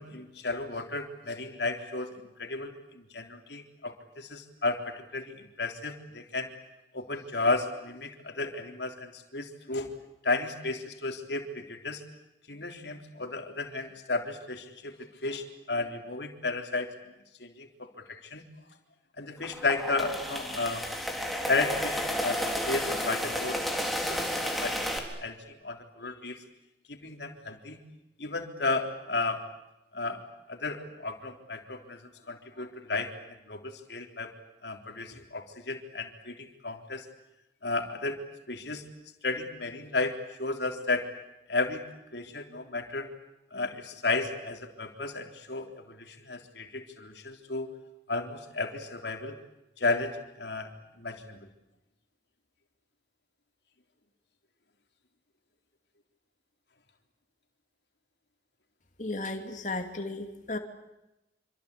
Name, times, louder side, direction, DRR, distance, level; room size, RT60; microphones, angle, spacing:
voice 1, 0.0-6.5 6.9-9.9 10.2-12.0 12.5-14.9 15.2-16.9 17.4-18.4 19.2-20.9 21.5-22.4 22.7-25.4 25.6-26.4 26.9-27.8 28.2-29.4 29.9-30.2 30.5-32.0 32.3-33.1 33.5-34.3 34.6-37.1 37.6-38.2 38.5-38.8 39.2-41.1 41.5-41.9 42.1-43.1 43.5-47.7 48.1-49.3 49.8-51.4, left 3 dB, 75° left, 4 dB, 3.6 m, -33 dB
sound 1, 19.4-25.0, equal, ahead, 3.6 m, -32 dB
voice 2, 59.0-60.6, left 2 dB, 45° left, 6 dB, 2.7 m, -34 dB
27.0 x 26.0 x 8.5 m, 0.93 s
head